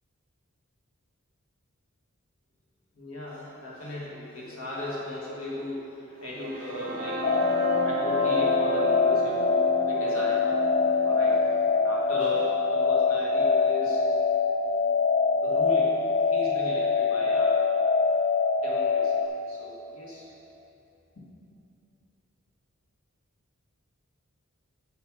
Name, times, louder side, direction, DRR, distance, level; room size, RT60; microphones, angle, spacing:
voice 1, 2.9-7.3 7.8-9.4 9.9-10.5 11.0-11.5 11.8-14.0 15.4-15.9 16.2-17.6 18.6-19.2 19.5-20.3 21.1-21.2, left 1 dB, 75° left, -5 dB, 1.7 m, -37 dB
sound 1, 6.3-14.2, right 2 dB, 45° right, 0.7 m, -34 dB
sound 2, 7.2-19.3, left 4 dB, 35° left, 0.5 m, -24 dB
7.3 x 6.7 x 4.7 m, 2.9 s
head